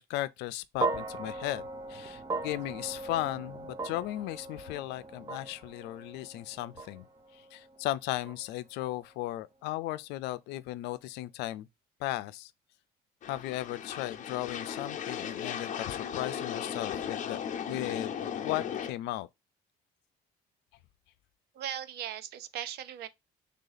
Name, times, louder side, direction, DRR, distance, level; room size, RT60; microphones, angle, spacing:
voice 1, 0.0-7.0 7.3-11.7 12.0-12.5 13.3-17.4 17.7-18.2 18.4-19.3, left 15 dB, 90° left, 0.4 m, -36 dB
sound 1, 0.8-9.1, right 3 dB, 20° right, 0.7 m, -39 dB
sound 2, 13.2-18.9, left 8 dB, 50° left, 0.8 m, -36 dB
voice 2, 21.5-23.1, right 10 dB, 75° right, 0.5 m, -38 dB
3.4 x 2.8 x 3.9 m
cardioid pair, 110°, 17 cm